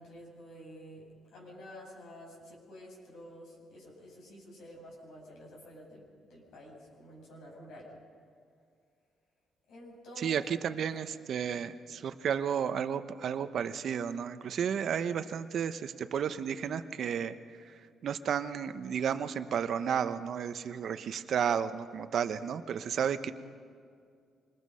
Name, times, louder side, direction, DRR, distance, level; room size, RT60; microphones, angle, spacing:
voice 1, 0.0-7.9 9.7-10.9, equal, 80° left, -3 dB, 8.0 m, -50 dB
voice 2, 10.2-23.3, right 8 dB, 65° right, 11 dB, 0.9 m, -32 dB
25.0 x 20.5 x 5.6 m, 2.2 s
cardioid pair, 90°, 0 cm